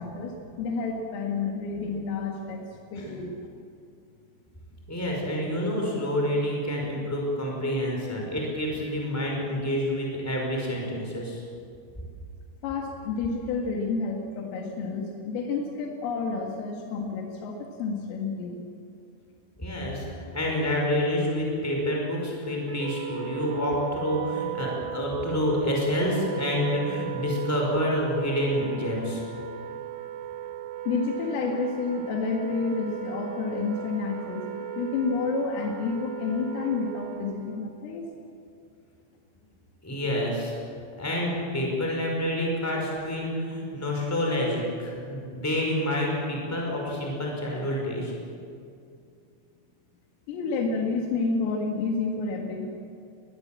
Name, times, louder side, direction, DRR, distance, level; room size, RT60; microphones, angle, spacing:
voice 1, 0.0-3.4 12.6-18.6 30.9-34.5 34.8-38.1 50.3-52.7, left 4 dB, 85° left, 1 dB, 4.4 m, -30 dB
voice 2, 4.9-11.4 19.6-29.2 39.8-40.5 41.0-48.1, left 1 dB, 5° left, -1 dB, 4.8 m, -28 dB
Wind instrument woodwind instrument, 22.7-37.6, right 10 dB, 65° right, 3.1 m, -37 dB
21.5 x 21.0 x 7.5 m, 2.4 s
omnidirectional pair, 5.7 m